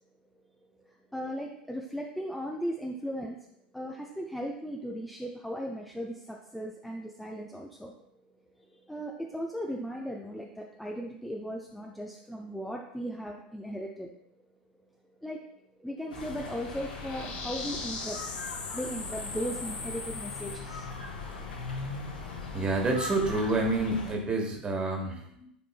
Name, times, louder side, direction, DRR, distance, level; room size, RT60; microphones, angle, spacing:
voice 1, 0.9-3.4 3.7-7.9 8.6-14.1 15.2-15.4 15.8-18.2 18.7-20.9, equal, ahead, -1 dB, 0.6 m, -37 dB
sound 1, 16.1-24.1, left 3 dB, 70° left, 1.8 m, -40 dB
sound 2, 16.2-20.6, left 3 dB, 50° left, 2.4 m, -39 dB
voice 2, 22.5-25.5, right 2 dB, 20° right, 2 dB, 1.5 m, -28 dB
10.5 x 5.3 x 2.2 m, 0.73 s
figure-of-eight pair, 85°, 5 cm